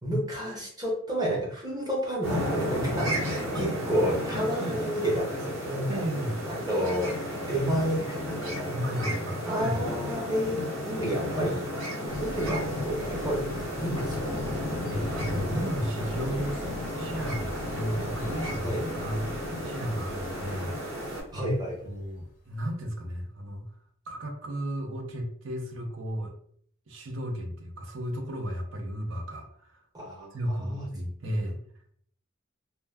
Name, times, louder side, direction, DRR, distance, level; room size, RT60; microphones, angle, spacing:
voice 1, 0.0-6.0 6.5-8.8 9.5-11.6 12.2-13.5 13.8-14.1 18.6-18.8 21.3-21.9 29.9-30.9 31.2-31.4, equal, 20° right, -2 dB, 0.7 m, -30 dB
sound 1, 2.2-21.2, equal, 90° right, 1.2 m, -33 dB
voice 2, 4.3-4.8 5.9-6.4 8.7-9.8 14.5-16.7 17.0-21.5 21.8-23.7 24.1-26.3 26.9-29.8 30.3-31.6, equal, 70° right, 3 dB, 0.5 m, -34 dB
sound 2, 12.1-22.7, left 1 dB, 40° left, 0.5 m, -42 dB
2.2 x 2.1 x 3.3 m, 0.63 s
head